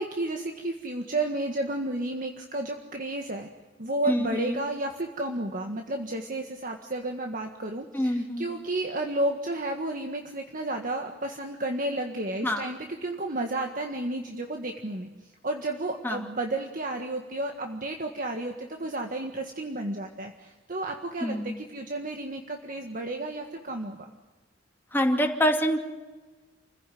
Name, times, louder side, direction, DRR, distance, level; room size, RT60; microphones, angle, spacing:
voice 1, 0.0-3.5 3.8-15.1 15.4-24.1, right 2 dB, 45° right, 3 dB, 1.7 m, -32 dB
voice 2, 4.1-4.6 7.9-8.6 12.4-12.6 16.0-16.2 21.2-21.6 24.9-25.8, equal, 10° left, 2 dB, 2.7 m, -26 dB
29.0 x 16.0 x 9.4 m, 1.2 s
head